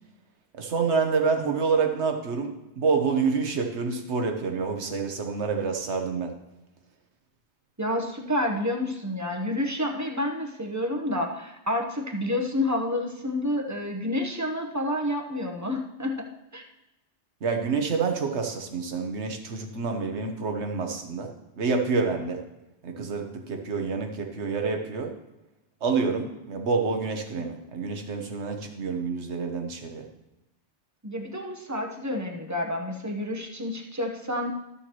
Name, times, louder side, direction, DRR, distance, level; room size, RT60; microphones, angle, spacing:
voice 1, 0.6-6.3 17.4-22.4 22.8-25.1 25.8-30.0, right 4 dB, 85° right, 4 dB, 1.3 m, -28 dB
voice 2, 7.8-16.3 16.5-16.6 31.0-34.5, left 1 dB, 15° right, 2 dB, 0.9 m, -29 dB
13.0 x 7.0 x 3.0 m, 0.97 s
omnidirectional pair, 1.1 m